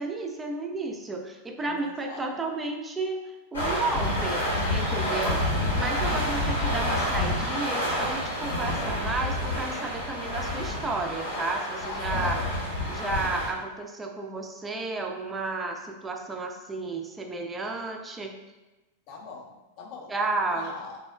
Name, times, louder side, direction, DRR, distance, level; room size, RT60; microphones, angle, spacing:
voice 1, 0.0-5.4 5.8-12.4 12.9-18.4 20.1-20.7, right 3 dB, 15° right, 3 dB, 0.3 m, -32 dB
voice 2, 1.7-2.2 5.0-5.3 11.8-12.7 19.1-19.5 19.8-20.1 20.5-21.0, left 4 dB, 45° left, 0 dB, 0.5 m, -41 dB
sound 1, 3.5-13.5, left 1 dB, 75° left, 0.8 m, -28 dB
3.4 x 2.0 x 2.3 m, 1.1 s
figure-of-eight pair, 90°, 0 cm